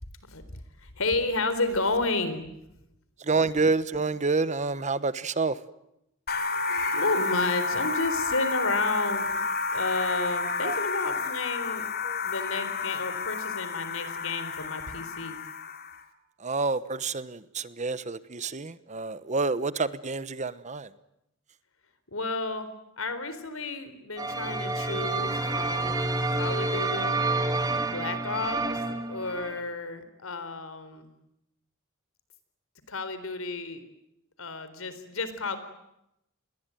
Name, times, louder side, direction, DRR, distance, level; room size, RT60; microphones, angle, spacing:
voice 1, 0.3-2.4 6.4-9.4 9.7-11.9 12.2-15.4 22.1-22.7 23.0-27.2 27.9-31.1 32.9-33.8 34.4-35.6, left 3 dB, 90° left, 12 dB, 4.1 m, -32 dB
voice 2, 3.2-5.6 10.6-10.8 12.0-12.2 16.4-20.9, right 4 dB, 35° right, 15 dB, 1.1 m, -28 dB
sound 1, 6.3-16.0, left 4 dB, 50° left, 2.8 m, -30 dB
sound 2, 24.2-29.6, right 2 dB, 20° right, 2.2 m, -29 dB
29.5 x 22.0 x 9.2 m, 0.84 s
head